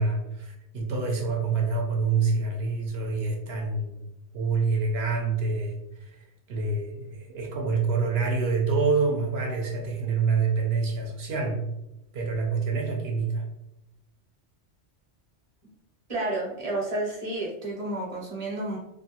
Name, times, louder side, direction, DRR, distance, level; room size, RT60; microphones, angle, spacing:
voice 1, 0.0-4.0 4.3-11.7 12.1-13.5, right 4 dB, 65° right, 1 dB, 0.8 m, -27 dB
voice 2, 16.1-18.8, right 2 dB, 35° right, -4 dB, 0.8 m, -31 dB
2.5 x 2.3 x 2.7 m, 0.89 s
omnidirectional pair, 1.2 m